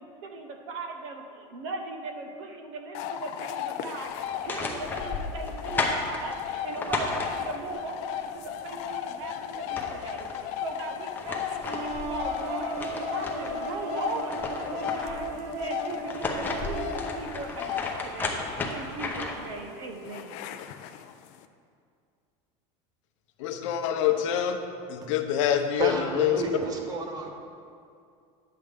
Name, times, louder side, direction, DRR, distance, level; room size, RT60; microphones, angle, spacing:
voice 1, 0.0-20.4, right 3 dB, 75° right, 4 dB, 1.1 m, -39 dB
sound 1, 2.9-21.4, left 10 dB, 45° left, 0.4 m, -36 dB
sound 2, 4.2-7.8 9.2-9.3 9.6-10.4 10.9-13.6 14.0-15.3 15.9-19.5, left 3 dB, 10° left, 0.6 m, -33 dB
sound 3, 11.7-17.5, right 2 dB, 45° right, 1.1 m, -36 dB
voice 2, 23.4-24.6 24.9-26.4, left 10 dB, 80° left, 6 dB, 0.8 m, -26 dB
voice 3, 25.8-27.3, right 2 dB, 25° right, 4 dB, 0.8 m, -31 dB
9.7 x 7.8 x 3.5 m, 2.4 s
cardioid pair, 165°, 16 cm